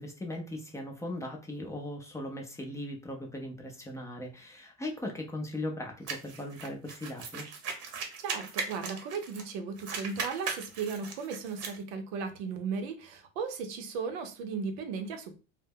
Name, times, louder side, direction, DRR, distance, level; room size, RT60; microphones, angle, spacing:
voice 1, 0.0-7.5, left 1 dB, 10° left, 1 dB, 0.4 m, -38 dB
sound 1, 6.1-9.5 9.8-11.8, right 5 dB, 50° right, 0.7 m, -38 dB
voice 2, 8.2-15.4, right 5 dB, 90° right, 6 dB, 0.6 m, -36 dB
2.2 x 2.0 x 3.4 m, 0.32 s
supercardioid pair, 120°, 31 cm